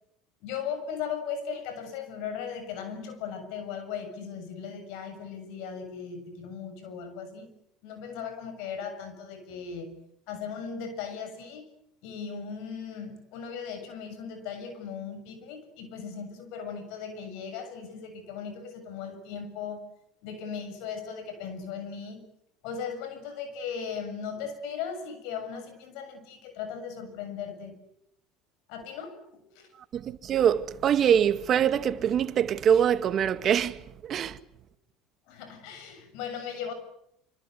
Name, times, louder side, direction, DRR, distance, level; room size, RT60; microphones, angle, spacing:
voice 1, 0.4-7.5 7.8-10.0 10.3-11.7 12.0-19.8 20.2-22.2 22.6-27.8 28.7-29.2 29.6-29.7 35.3-36.7, left 6 dB, 70° left, 7.0 m, -37 dB
voice 2, 29.9-34.4, right 9 dB, 45° right, 1.8 m, -24 dB
26.0 x 26.0 x 8.2 m
hypercardioid pair, 85°, 0 cm